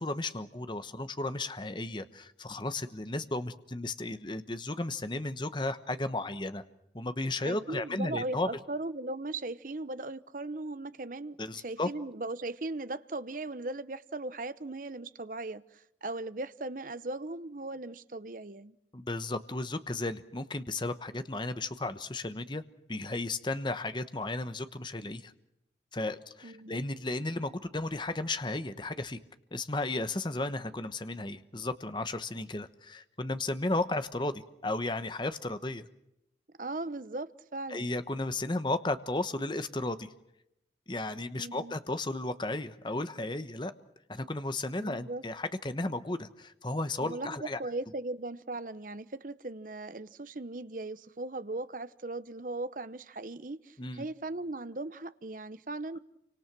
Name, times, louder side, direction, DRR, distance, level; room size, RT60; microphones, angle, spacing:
voice 1, 0.0-6.6 6.9-8.5 11.4-11.9 18.9-22.6 22.9-25.3 25.9-29.2 29.5-35.9 37.7-40.1 40.9-43.7 44.1-47.6 53.8-54.0, left 2 dB, 25° left, 1.1 m, -34 dB
voice 2, 7.4-18.8 26.4-26.8 36.6-37.9 41.4-41.7 44.8-45.2 47.0-56.0, right 2 dB, 50° right, 0.9 m, -38 dB
29.0 x 25.5 x 6.1 m
head